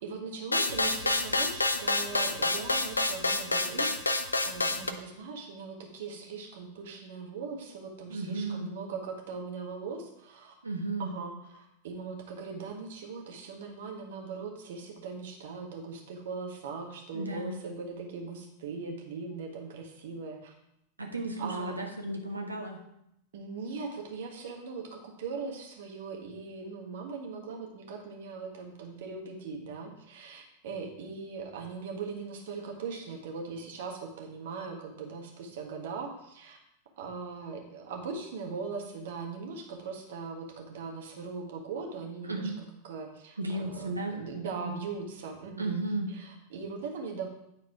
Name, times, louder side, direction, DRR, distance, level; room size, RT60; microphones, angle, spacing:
voice 1, 0.0-10.6 11.0-20.5 21.0-21.7 23.3-36.6 37.0-42.5 42.9-45.8 46.1-47.3, right 4 dB, 55° right, 1 dB, 1.6 m, -40 dB
sound 1, 0.5-4.9, left 2 dB, 80° left, 0.6 m, -28 dB
voice 2, 8.1-8.7 10.6-11.1 17.1-17.6 21.0-22.8 42.2-42.6 43.4-44.2 44.6-44.7 45.6-46.1, right 2 dB, 80° right, 2 dB, 1.3 m, -34 dB
9.9 x 4.1 x 4.8 m, 0.79 s
figure-of-eight pair, 90°, 0 cm